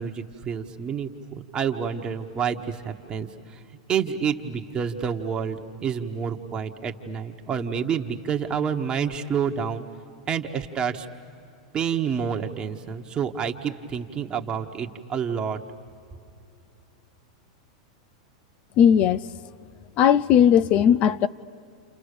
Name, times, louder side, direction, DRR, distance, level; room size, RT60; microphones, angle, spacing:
voice 1, 0.0-3.3 3.9-9.8 10.3-11.1 11.7-15.6, right 7 dB, 25° right, 1.4 m, -28 dB
voice 2, 18.8-19.2 20.0-21.3, left 9 dB, 40° left, 0.6 m, -17 dB
29.5 x 28.5 x 6.8 m
hypercardioid pair, 120°, 3 cm